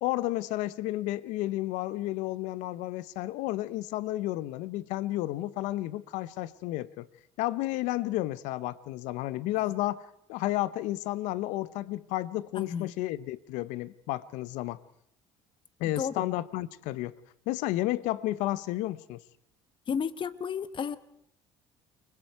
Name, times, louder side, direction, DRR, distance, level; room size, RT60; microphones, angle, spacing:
voice 1, 0.0-7.1 7.4-14.8 15.8-17.2 17.5-19.2, left 16 dB, 80° left, 0.8 m, -32 dB
voice 2, 12.6-12.9 16.0-16.2 19.9-21.0, left 7 dB, 40° left, 1.2 m, -32 dB
30.0 x 20.5 x 4.7 m
supercardioid pair, 85°, 12 cm